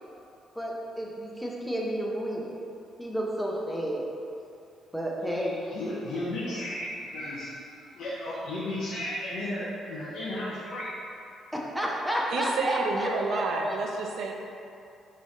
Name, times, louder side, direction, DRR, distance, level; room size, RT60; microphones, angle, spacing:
voice 1, 0.5-2.6 3.0-4.0 4.9-5.6 11.5-13.8, equal, 5° left, -3 dB, 0.7 m, -31 dB
voice 2, 5.7-10.9, left 1 dB, 65° left, -9 dB, 0.7 m, -34 dB
voice 3, 12.3-14.3, right 3 dB, 75° right, 1 dB, 0.5 m, -29 dB
3.7 x 3.2 x 4.0 m, 2.6 s
cardioid pair, 90°, 0 cm